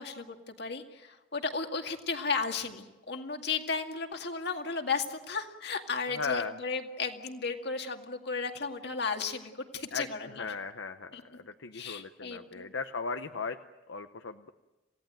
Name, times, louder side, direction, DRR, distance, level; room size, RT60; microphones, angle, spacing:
voice 1, 0.0-10.5 11.1-11.2 11.7-12.7, left 4 dB, 60° left, 5 dB, 2.2 m, -34 dB
voice 2, 6.1-6.5 9.9-13.6 13.9-14.5, left 5 dB, 75° left, 8 dB, 0.8 m, -37 dB
27.5 x 17.0 x 9.1 m, 1.1 s
head